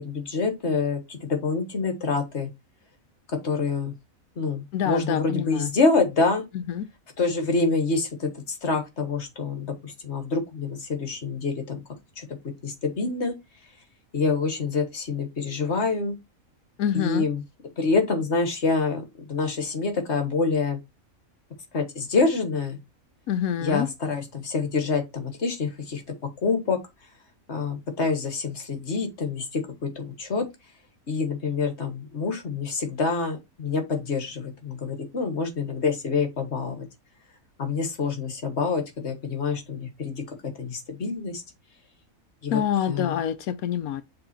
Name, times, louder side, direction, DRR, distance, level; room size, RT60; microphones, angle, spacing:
voice 1, 0.0-2.5 3.3-3.9 4.4-6.4 7.2-11.8 12.2-12.4 12.6-13.3 14.1-16.1 16.9-17.4 17.8-20.8 21.7-22.8 23.6-26.8 27.5-30.4 31.1-36.9 37.6-41.4 42.4-42.6 42.9-43.2, left 4 dB, 50° left, 1.7 m, -26 dB
voice 2, 4.7-5.7 6.5-6.8 16.8-17.3 23.3-23.9 42.5-44.0, left 9 dB, 85° left, 1.1 m, -26 dB
6.9 x 3.6 x 4.3 m
omnidirectional pair, 1.5 m